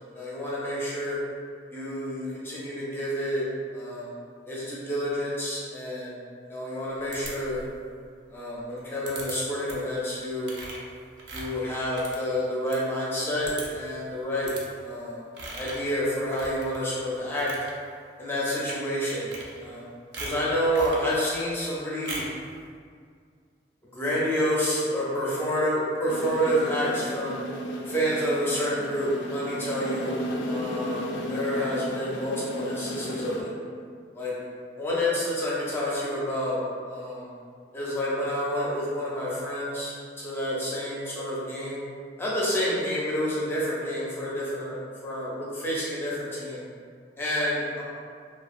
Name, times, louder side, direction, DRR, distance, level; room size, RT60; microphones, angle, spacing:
voice 1, 0.1-1.2 1.7-3.4 3.7-4.1 4.5-6.2 6.4-7.6 8.3-10.5 11.3-14.5 14.8-15.2 15.6-17.5 18.2-19.3 19.6-19.9 20.2-22.2 23.9-27.4 27.9-33.5 34.1-34.3 34.8-37.3 37.7-41.8 42.2-46.6 47.2-47.8, equal, 15° left, -7 dB, 0.5 m, -29 dB
sound 1, 7.1-7.8 9.1-9.3 9.7-10.0 10.4-12.8 13.1-13.2 13.4-13.9 14.4-14.6 15.3-15.9 16.3-16.9 17.2-17.7 18.6-18.8 19.1-19.8 20.1-21.1 22.0-22.4, right 2 dB, 65° right, 0.4 m, -39 dB
sound 2, 26.1-33.4, equal, 80° left, 0.3 m, -34 dB
2.7 x 2.0 x 2.4 m, 2.1 s
head